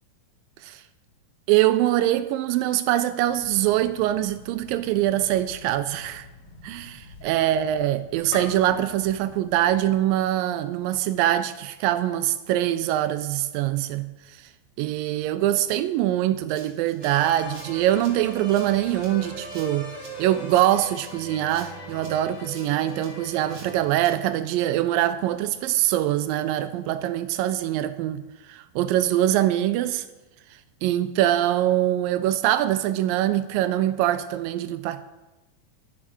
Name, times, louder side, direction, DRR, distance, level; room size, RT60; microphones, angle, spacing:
voice 1, 1.5-6.3 6.6-14.1 14.8-19.9 20.2-28.2 28.5-30.0 30.8-35.0, right 13 dB, 80° right, 2.1 m, -23 dB
sound 1, 3.3-10.0, left 3 dB, 70° left, 3.4 m, -45 dB
Rattle (instrument), 16.6-24.6, right 4 dB, 45° right, 2.0 m, -50 dB
sound 2, 17.0-24.2, right 1 dB, 30° left, 2.5 m, -40 dB
12.0 x 7.5 x 6.2 m
omnidirectional pair, 4.2 m